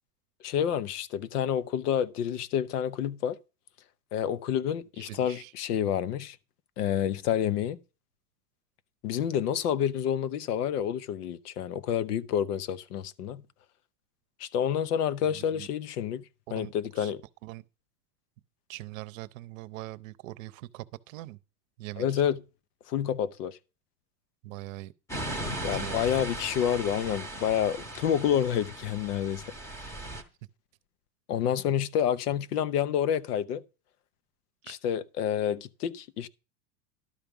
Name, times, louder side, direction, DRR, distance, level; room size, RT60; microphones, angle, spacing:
voice 1, 0.4-3.4 4.1-6.4 6.8-7.8 9.0-13.4 14.4-16.2 16.5-17.2 22.0-22.4 22.9-23.6 25.6-29.4 31.3-33.6 34.7-36.3, left 9 dB, 90° left, 0.9 m, -28 dB
voice 2, 5.0-5.5 15.3-15.7 16.5-17.1 17.4-17.6 18.7-21.4 21.8-22.1 24.4-24.9 25.4-26.0, right 18 dB, 60° right, 0.7 m, -42 dB
sound 1, 25.1-30.2, right 1 dB, 5° left, 0.8 m, -37 dB
12.0 x 6.0 x 5.3 m
supercardioid pair, 160°, 45 cm